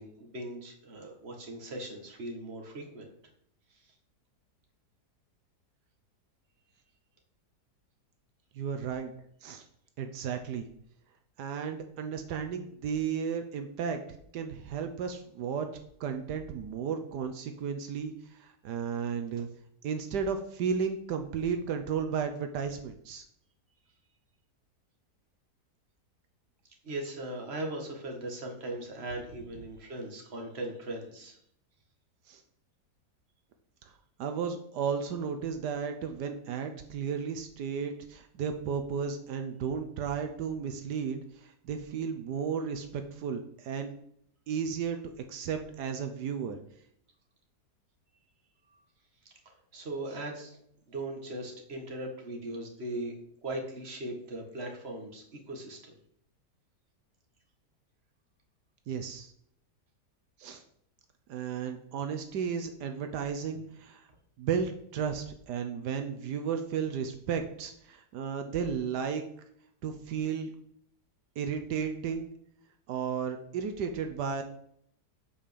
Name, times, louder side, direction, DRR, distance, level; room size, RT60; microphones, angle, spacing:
voice 1, 0.0-3.1 3.7-3.8 26.8-31.4 49.5-50.6 50.9-53.1 53.4-55.9, right 1 dB, 40° right, 1 dB, 2.0 m, -39 dB
voice 2, 8.5-9.1 9.4-9.6 10.0-10.7 11.4-14.0 14.3-15.7 16.0-19.5 19.8-23.2 32.3-32.4 33.8-33.9 34.2-43.9 44.5-45.0 45.3-46.6 58.9-59.3 60.4-60.6 61.3-64.1 64.4-69.2 69.8-70.5 71.4-72.3 72.9-74.4, right 6 dB, 80° right, 6 dB, 1.4 m, -34 dB
7.7 x 5.6 x 6.8 m, 0.69 s
omnidirectional pair, 1.8 m